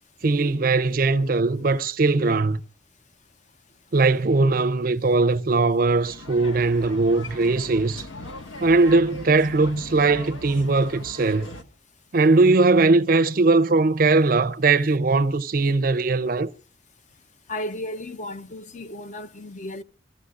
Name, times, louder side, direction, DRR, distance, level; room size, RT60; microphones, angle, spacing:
voice 1, 0.2-2.6 3.9-8.1 8.6-11.5 12.1-16.5, right 3 dB, 45° right, 0.5 m, -20 dB
sound 1, 5.9-11.6, left 1 dB, 85° left, 1.6 m, -39 dB
voice 2, 17.5-19.8, left 1 dB, 40° left, 0.7 m, -34 dB
26.0 x 14.0 x 2.4 m
head